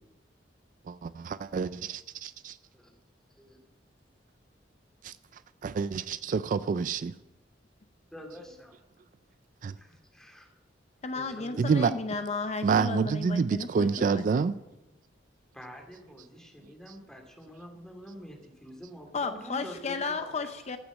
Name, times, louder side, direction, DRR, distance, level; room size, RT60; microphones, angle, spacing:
voice 1, 0.9-2.6 5.0-5.1 5.6-7.1 9.6-9.7 11.6-11.9 12.6-14.5, right 5 dB, 45° right, 15 dB, 0.3 m, -28 dB
voice 2, 8.1-8.7 9.8-10.5 11.1-12.0 15.5-20.5, equal, 5° left, 1 dB, 2.4 m, -46 dB
voice 3, 11.0-14.4 19.1-20.8, left 4 dB, 40° left, 8 dB, 0.6 m, -34 dB
14.5 x 6.1 x 8.1 m, 0.99 s
head